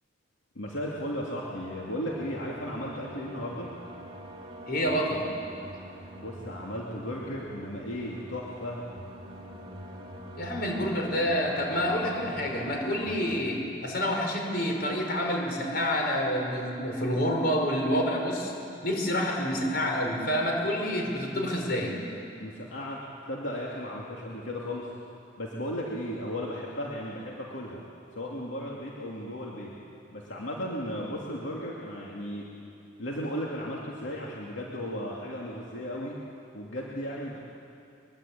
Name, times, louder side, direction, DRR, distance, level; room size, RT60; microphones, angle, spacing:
voice 1, 0.5-3.7 6.1-8.8 22.4-23.0 23.3-24.9 25.4-27.8 28.1-29.7 30.1-32.5 33.0-36.2 36.5-37.4, equal, 75° left, -4 dB, 2.7 m, -35 dB
sound 1, 1.4-13.4, equal, 30° right, 2.3 m, -44 dB
voice 2, 4.7-5.2 10.4-18.5 18.8-21.9, equal, 50° left, 1 dB, 5.3 m, -28 dB
23.0 x 23.0 x 8.7 m, 2.6 s
head